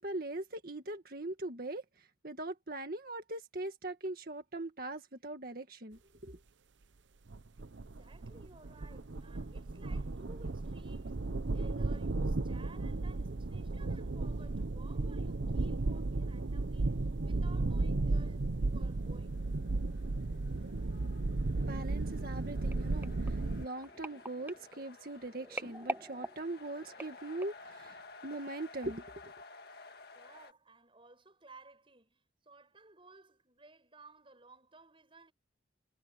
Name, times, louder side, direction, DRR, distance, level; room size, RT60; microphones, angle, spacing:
voice 1, 0.0-1.8 2.2-6.4 21.6-29.3, right 2 dB, 50° right, 2.0 m, -41 dB
sound 1, 7.3-23.7, right 2 dB, 75° right, 0.8 m, -34 dB
voice 2, 7.7-11.2 11.5-17.0 17.2-19.4 30.1-35.3, right 3 dB, 30° right, 6.6 m, -58 dB
sound 2, 19.0-30.5, left 3 dB, 55° left, 1.8 m, -55 dB
sound 3, 22.7-27.7 28.3-28.6 28.8-28.9, right 2 dB, 10° right, 0.6 m, -45 dB
head